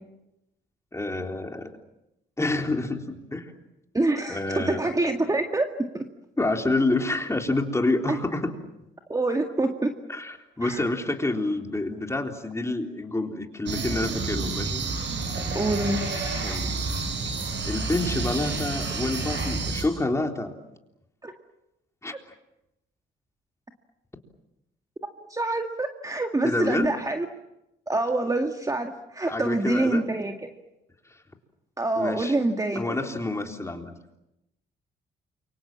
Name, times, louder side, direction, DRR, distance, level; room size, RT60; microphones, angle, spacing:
voice 1, 0.9-1.7 2.4-3.6 4.3-4.9 6.4-8.5 10.1-14.8 16.4-16.8 17.3-17.4 17.7-20.5 22.0-22.2 26.4-26.9 29.3-30.1 32.0-32.3 32.8-33.9, left 2 dB, 15° left, 3 dB, 3.7 m, -28 dB
voice 2, 3.9-6.1 8.1-8.2 9.1-9.9 10.6-10.8 15.5-16.1 21.2-21.3 25.2-27.3 27.9-30.5 31.8-32.9, right 2 dB, 15° right, 4 dB, 1.9 m, -26 dB
sound 1, 13.7-19.8, right 3 dB, 65° right, 7.0 m, -29 dB
28.5 x 24.5 x 7.4 m, 0.89 s
cardioid pair, 90°, 20 cm